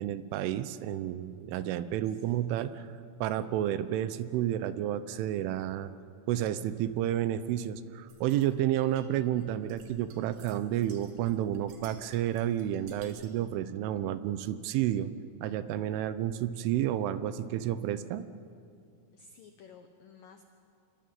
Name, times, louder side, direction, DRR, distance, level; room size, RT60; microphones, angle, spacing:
voice 1, 0.0-2.8 3.2-5.9 6.3-15.1 15.4-18.2, right 12 dB, 80° right, 12 dB, 3.2 m, -31 dB
voice 2, 2.1-2.6 10.8-11.0 19.1-20.4, left 6 dB, 90° left, 6 dB, 1.9 m, -54 dB
sound 1, 8.1-13.4, right 5 dB, 60° right, 4.4 m, -56 dB
27.0 x 23.5 x 9.4 m, 2.4 s
omnidirectional pair, 5.8 m